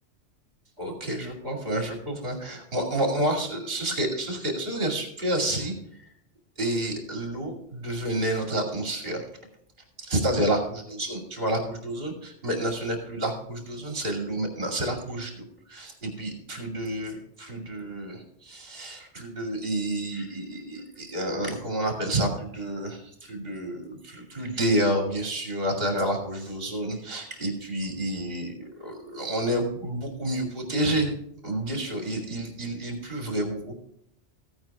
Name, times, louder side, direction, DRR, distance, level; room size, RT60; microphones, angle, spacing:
voice 1, 0.8-5.7 6.6-9.2 10.0-31.1 31.4-33.7, right 1 dB, 55° right, 2 dB, 2.8 m, -29 dB
14.5 x 8.8 x 3.6 m, 0.70 s
omnidirectional pair, 1.2 m